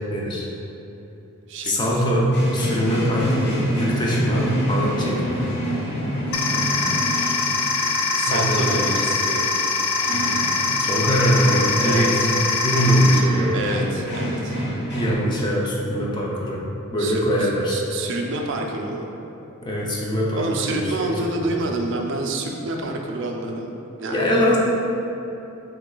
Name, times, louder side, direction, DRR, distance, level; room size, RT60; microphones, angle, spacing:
voice 1, 0.1-0.5 1.6-5.4 8.3-8.8 10.3-10.4 10.8-13.6 14.9-16.6 16.9-17.8 19.6-21.5 24.1-24.6, equal, 20° left, -3 dB, 0.4 m, -22 dB
voice 2, 1.5-2.0 8.2-9.5 11.8-12.3 13.5-14.6 17.0-19.1 20.4-24.5, right 2 dB, 55° right, 1 dB, 0.4 m, -28 dB
sound 1, 2.3-15.1, equal, 50° left, 1.1 m, -29 dB
sound 2, 6.3-13.2, left 3 dB, 75° left, 0.4 m, -23 dB
3.1 x 3.0 x 3.7 m, 3.0 s
head